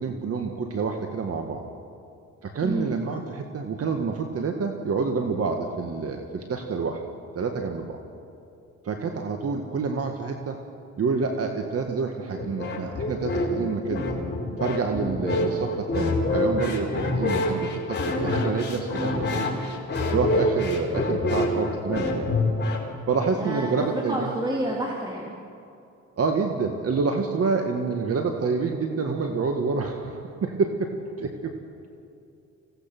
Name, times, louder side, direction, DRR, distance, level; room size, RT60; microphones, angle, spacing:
voice 1, 0.0-1.6 2.4-7.0 7.4-8.0 8.8-10.6 11.0-14.2 14.6-19.4 20.1-22.3 23.1-24.3 26.2-30.9 31.2-31.5, right 4 dB, 50° right, 4 dB, 1.8 m, -28 dB
voice 2, 2.6-3.0 23.4-23.7 24.1-25.3, right 1 dB, 15° right, -3 dB, 3.3 m, -29 dB
sound 1, 12.4-22.9, left 2 dB, 35° left, 4.6 m, -26 dB
25.5 x 17.5 x 6.1 m, 2.6 s
cardioid pair, 90°, 30 cm